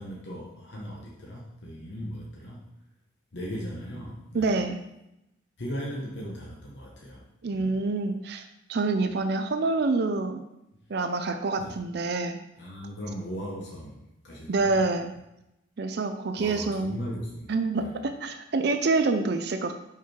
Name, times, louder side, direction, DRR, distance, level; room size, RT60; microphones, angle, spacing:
voice 1, 0.0-2.7 3.3-4.6 5.6-7.3 7.5-7.8 11.6-11.7 12.6-14.0 14.2-14.8 16.4-18.0, equal, 60° left, -3 dB, 1.0 m, -38 dB
voice 2, 4.3-4.8 7.4-10.4 10.9-12.4 14.5-15.1 15.8-17.0 17.5-19.7, right 3 dB, 55° right, 7 dB, 0.4 m, -27 dB
5.8 x 4.6 x 4.4 m, 0.86 s
head